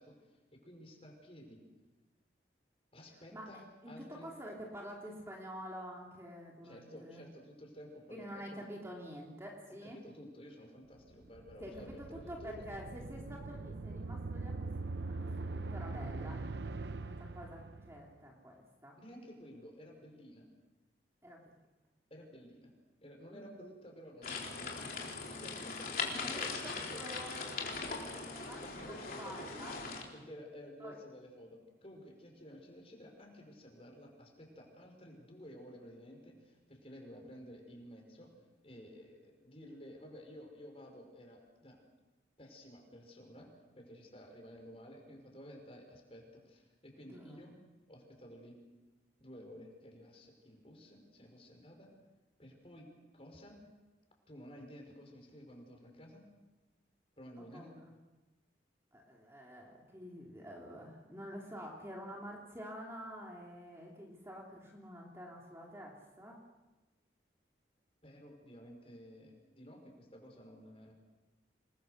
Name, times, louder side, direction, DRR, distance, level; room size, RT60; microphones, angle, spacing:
voice 1, 0.0-1.6 2.9-4.3 6.6-8.6 9.8-12.7 19.0-20.5 22.1-22.7 23.0-27.0 28.0-28.3 28.6-38.3 38.6-41.8 42.4-47.6 47.9-48.6 49.2-51.9 52.4-53.6 54.3-56.2 57.2-57.7 68.0-70.9, equal, 30° left, 2 dB, 5.4 m, -53 dB
voice 2, 3.3-7.2 8.1-10.1 11.6-14.7 15.2-16.4 16.8-19.0 21.2-21.5 23.3-23.5 26.1-30.1 30.8-31.0 47.1-47.4 57.5-57.9 58.9-66.4, equal, 15° right, -2 dB, 3.0 m, -48 dB
sound 1, 11.1-18.1, right 3 dB, 75° right, 0.8 m, -42 dB
sound 2, 24.2-30.0, left 4 dB, 50° left, 4.0 m, -40 dB
28.0 x 21.5 x 6.6 m, 1.1 s
head